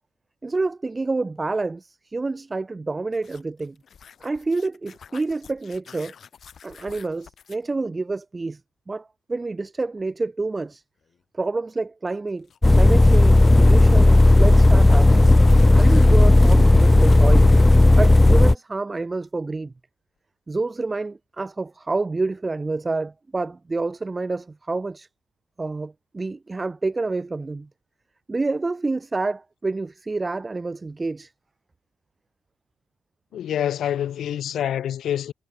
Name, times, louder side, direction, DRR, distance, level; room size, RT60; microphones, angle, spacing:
voice 1, 0.4-3.8 4.2-6.1 6.6-8.6 8.9-10.8 11.3-12.5 12.7-15.3 15.7-17.5 18.0-19.7 20.5-25.1 25.6-27.7 28.3-31.3, right 3 dB, 20° right, 0.8 m, -28 dB
sound 1, 3.1-7.7 10.0-10.1 12.1-17.9, left 7 dB, 50° left, 3.6 m, -37 dB
sound 2, 12.6-18.6, left 2 dB, 15° left, 0.4 m, -13 dB
voice 2, 33.3-35.3, left 10 dB, 70° left, 1.0 m, -26 dB
cardioid pair, 90°, 0 cm